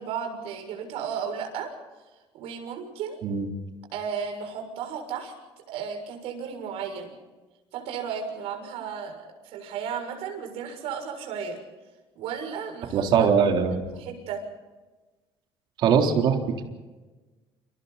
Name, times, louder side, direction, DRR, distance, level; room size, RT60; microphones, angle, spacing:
voice 1, 0.0-1.7 2.3-3.2 3.9-5.3 5.7-7.1 7.7-11.6 12.1-13.3 14.0-14.4, right 7 dB, 80° right, 4 dB, 6.8 m, -34 dB
voice 2, 12.9-13.8 15.8-16.6, right 6 dB, 55° right, 2 dB, 3.8 m, -21 dB
29.5 x 27.5 x 4.2 m, 1.2 s
cardioid pair, 175°, 10 cm